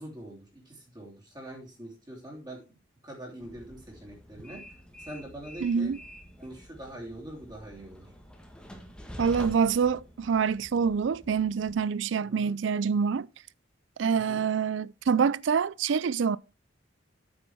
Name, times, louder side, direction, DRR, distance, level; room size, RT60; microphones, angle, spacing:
voice 1, 0.0-2.6 3.0-4.6 5.0-5.9 6.4-8.1 12.2-12.5 14.3-14.4, right 1 dB, 20° right, 3.0 m, -43 dB
Train, 3.4-11.7, equal, 5° left, 1.5 m, -47 dB
voice 2, 5.6-6.0 9.2-13.3 14.0-16.4, right 6 dB, 70° right, 0.4 m, -26 dB
8.9 x 7.0 x 4.5 m
head